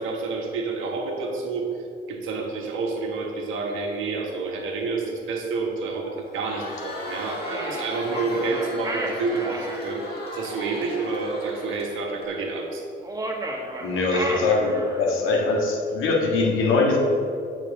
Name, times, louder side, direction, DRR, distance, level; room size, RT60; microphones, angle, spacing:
voice 1, 0.0-1.7 2.1-10.0 10.3-12.9 14.3-14.4, right 3 dB, 90° right, 1 dB, 1.5 m, -29 dB
Crowd, 6.2-12.3, left 2 dB, 50° left, 2.3 m, -37 dB
sound 1, 7.4-9.8 13.0-15.2, right 1 dB, 20° right, 1.4 m, -32 dB
voice 2, 13.8-17.0, left 3 dB, 85° left, -1 dB, 1.8 m, -22 dB
7.5 x 6.0 x 6.6 m, 2.5 s
cardioid pair, 90°, 20 cm